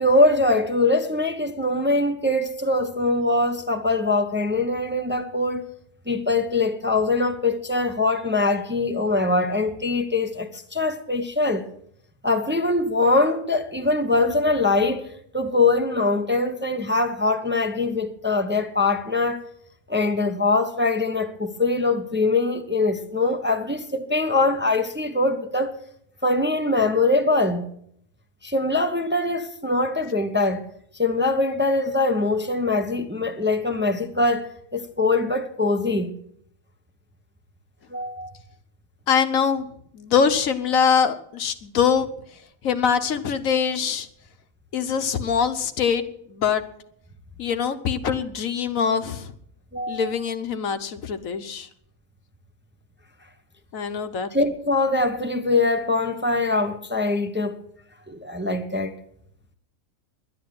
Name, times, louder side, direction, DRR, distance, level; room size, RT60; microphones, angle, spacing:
voice 1, 0.0-5.6 6.1-11.6 12.2-15.1 15.3-19.4 19.9-25.8 26.2-27.7 28.4-30.6 31.0-36.1 37.9-38.3 49.7-50.1 54.3-57.6 58.1-58.9, left 2 dB, 10° right, 0.9 m, -22 dB
voice 2, 39.1-39.7 39.9-42.1 42.6-44.1 44.7-46.0 46.3-46.6 47.4-49.3 49.9-51.7 53.7-54.3, left 6 dB, 75° left, 1.4 m, -23 dB
11.0 x 10.0 x 9.5 m
omnidirectional pair, 1.4 m